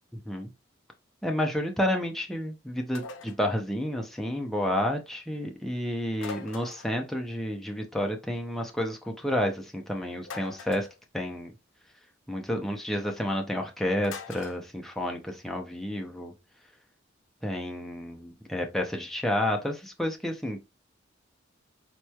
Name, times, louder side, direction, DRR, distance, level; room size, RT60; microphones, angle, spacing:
voice 1, 1.2-10.9 11.1-11.5 12.3-16.3 17.4-20.6, left 1 dB, ahead, 0.5 m, -30 dB
sound 1, 2.9-3.4 6.2-7.0 10.2-10.9 14.0-14.6, left 4 dB, 75° left, 0.5 m, -42 dB
4.2 x 3.0 x 2.3 m
head